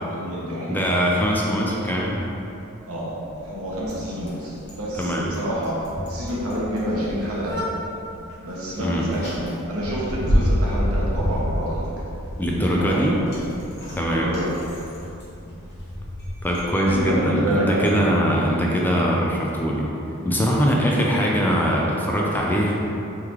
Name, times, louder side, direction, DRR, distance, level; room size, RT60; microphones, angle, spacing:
voice 1, 0.0-0.8 2.9-5.7 6.1-7.6 8.4-11.9 12.7-13.0 13.9-14.6 16.9-17.9, equal, 80° right, -6 dB, 0.9 m, -28 dB
voice 2, 0.7-2.2 5.0-5.3 8.8-9.1 12.4-13.2 14.0-14.3 16.4-19.9 20.3-22.7, equal, 10° left, -3 dB, 0.3 m, -22 dB
Bicycle, 1.8-17.0, equal, 50° left, 1.1 m, -30 dB
3.7 x 3.1 x 3.0 m, 2.8 s
head